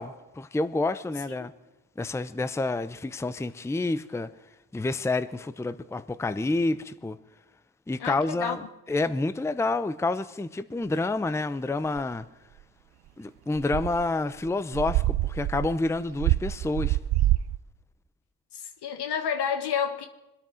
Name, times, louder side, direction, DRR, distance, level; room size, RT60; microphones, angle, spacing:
voice 1, 0.0-1.5 2.0-4.3 4.7-7.2 7.9-8.6 8.9-12.2 13.2-17.0, left 2 dB, 5° left, 0.6 m, -28 dB
voice 2, 8.0-8.6 18.5-20.1, left 7 dB, 80° left, 1.4 m, -30 dB
sound 1, 12.0-12.1 13.5-14.1 14.5-14.6 14.7-17.6, right 15 dB, 80° right, 0.5 m, -26 dB
25.0 x 8.7 x 6.3 m
cardioid pair, 95°, 39 cm